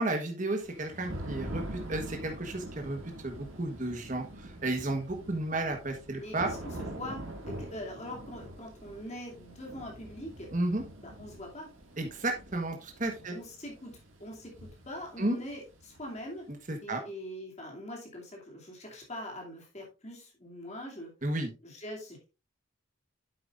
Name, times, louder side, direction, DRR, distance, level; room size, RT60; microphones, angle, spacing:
voice 1, 0.0-4.2 4.6-6.5 10.5-10.8 12.0-13.3 15.2-15.4 16.7-17.0 21.2-21.5, right 2 dB, 35° right, 4 dB, 1.3 m, -32 dB
Thunder / Rain, 0.6-16.4, right 1 dB, 70° right, 2.1 m, -44 dB
voice 2, 6.2-10.5 11.0-11.7 13.3-16.5 16.8-21.1 21.6-22.3, equal, 30° left, 0 dB, 2.6 m, -43 dB
9.0 x 7.7 x 2.5 m, 0.30 s
head